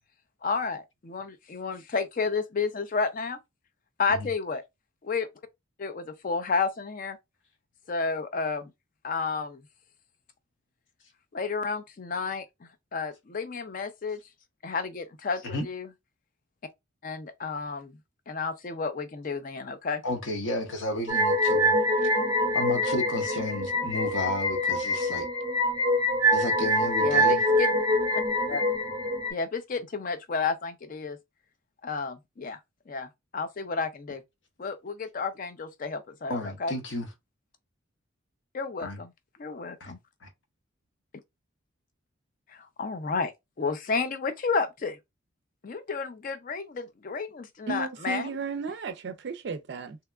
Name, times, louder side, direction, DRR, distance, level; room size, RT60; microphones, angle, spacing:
voice 1, 0.4-3.4 4.0-4.6 5.0-5.3 5.8-7.2 7.9-8.7 9.0-9.6 11.3-14.2 14.6-15.9 17.0-18.0 18.3-20.0 27.0-27.7 28.5-28.6 29.3-31.2 31.8-32.6 32.9-34.2 34.6-36.7 38.5-39.1 39.4-40.0 42.5-43.3 43.6-45.0 45.6-48.3, left 4 dB, 40° left, 0.4 m, -31 dB
voice 2, 20.0-21.7 22.0-22.1 22.5-25.3 26.3-27.4 36.3-37.1 38.8-39.0 39.8-40.0 40.2-40.3, left 2 dB, 60° left, 0.8 m, -32 dB
sound 1, 21.1-29.3, equal, 20° right, 0.6 m, -25 dB
voice 3, 47.7-50.0, right 5 dB, 55° right, 0.4 m, -34 dB
3.4 x 2.8 x 2.3 m
head